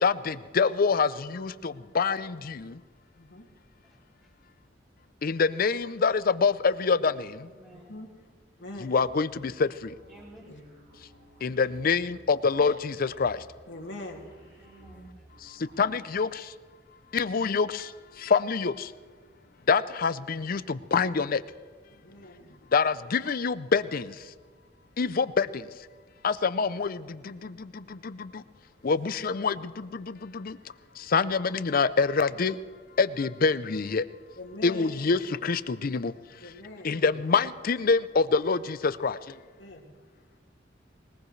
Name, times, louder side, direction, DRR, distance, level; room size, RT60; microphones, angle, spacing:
voice 1, 0.0-2.8 5.2-7.5 8.8-9.9 11.4-13.4 15.4-16.5 17.1-18.9 19.7-21.4 22.7-24.3 25.0-25.7 26.2-28.4 28.8-30.6 31.0-32.6 33.0-34.0 34.6-36.1 36.8-39.3, left 5 dB, 50° left, 15 dB, 0.5 m, -26 dB
voice 2, 3.2-3.5 7.7-8.1 8.6-8.9 10.5-10.6 13.7-14.3 21.9-22.6 34.4-34.9 36.4-37.0 39.6-39.9, left 1 dB, 80° left, 1 dB, 2.3 m, -43 dB
voice 3, 7.4-8.0 10.1-10.4 14.6-15.1 35.2-35.3, right 1 dB, 20° right, -8 dB, 2.8 m, -52 dB
sound 1, 9.0-16.1, right 1 dB, 80° right, 6.6 m, -56 dB
21.0 x 20.0 x 3.2 m, 1.5 s
head